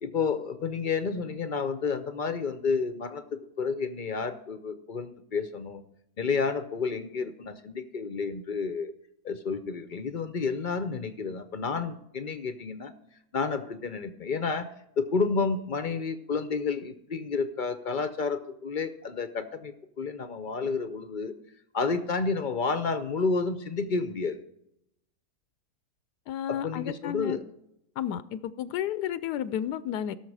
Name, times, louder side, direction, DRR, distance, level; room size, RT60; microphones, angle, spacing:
voice 1, 0.0-5.8 6.2-8.9 9.2-12.9 13.3-21.3 21.7-24.4 26.5-27.4, left 4 dB, 50° left, 11 dB, 0.6 m, -30 dB
voice 2, 26.3-27.4 28.0-30.2, left 10 dB, 90° left, 14 dB, 1.2 m, -32 dB
17.0 x 6.6 x 4.8 m, 0.78 s
omnidirectional pair, 1.7 m